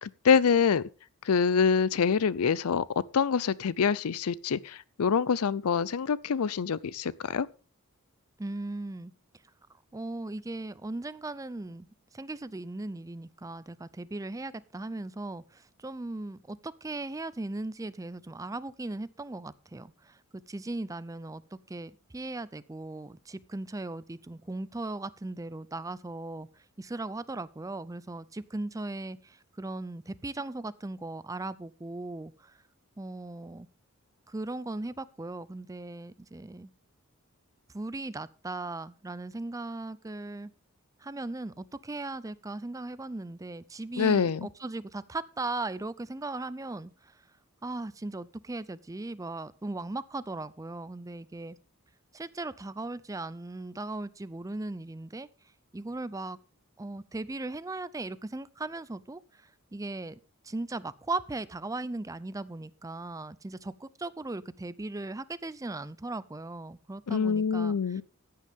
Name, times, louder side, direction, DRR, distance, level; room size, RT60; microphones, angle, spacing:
voice 1, 0.0-0.8 1.2-2.8 3.1-7.5 44.0-44.5 67.1-68.0, left 6 dB, 85° left, 0.5 m, -25 dB
voice 2, 8.4-9.1 9.9-11.9 12.1-20.2 20.5-32.6 33.0-33.7 34.3-36.7 37.7-40.5 41.0-47.2 47.6-51.6 52.1-55.3 55.7-56.4 56.8-60.2 60.4-68.0, right 2 dB, 15° right, 0.5 m, -38 dB
14.5 x 9.3 x 3.5 m
head